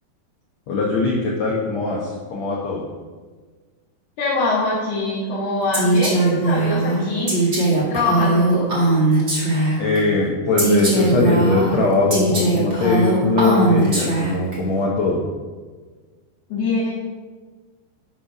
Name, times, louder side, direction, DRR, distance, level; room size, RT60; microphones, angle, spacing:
voice 1, 0.7-2.8 9.8-15.2, left 3 dB, 75° left, -3 dB, 1.5 m, -21 dB
voice 2, 4.2-8.6 16.5-16.9, left 2 dB, 55° left, -10 dB, 3.0 m, -24 dB
Female speech woman speaking, 5.7-10.0 10.6-14.5, right 2 dB, 45° right, 0.8 m, -19 dB
10.5 x 4.4 x 5.9 m, 1.4 s
omnidirectional pair, 4.7 m